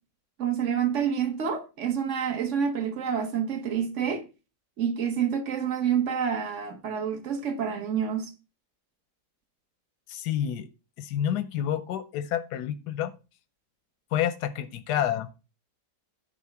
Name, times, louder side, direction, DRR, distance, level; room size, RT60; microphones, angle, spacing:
voice 1, 0.4-4.2 4.8-8.3, right 7 dB, 50° right, 1.7 m, -28 dB
voice 2, 10.1-10.7 11.0-13.1 14.1-15.3, left 10 dB, 90° left, 1.3 m, -29 dB
10.5 x 3.9 x 7.0 m
omnidirectional pair, 1.7 m